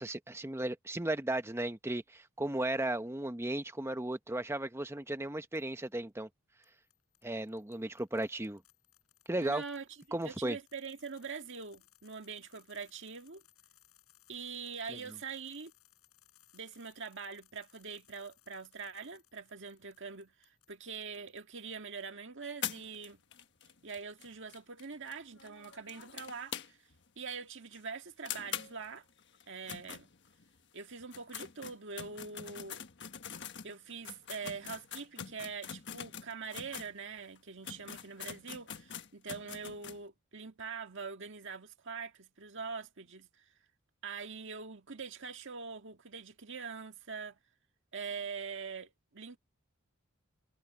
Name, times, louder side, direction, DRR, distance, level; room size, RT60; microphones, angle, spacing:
voice 1, 0.0-6.3 7.2-8.6 9.3-9.6 10.1-10.6, right 1 dB, 10° right, 0.9 m, -35 dB
sound 1, 5.6-6.0 6.6-22.1 22.5-23.2, left 14 dB, 85° left, 7.8 m, -67 dB
voice 2, 9.4-13.4 14.3-15.7 16.5-23.2 23.8-26.8 27.2-29.0 29.5-30.1 30.7-32.8 33.6-43.4 44.0-47.4 47.9-49.4, right 5 dB, 60° right, 1.8 m, -44 dB
sound 2, 22.6-27.0 27.3-27.4 27.7-27.8 28.3-30.6 31.0-36.9 37.4-37.5 37.6-40.0, left 8 dB, 55° left, 1.4 m, -44 dB
head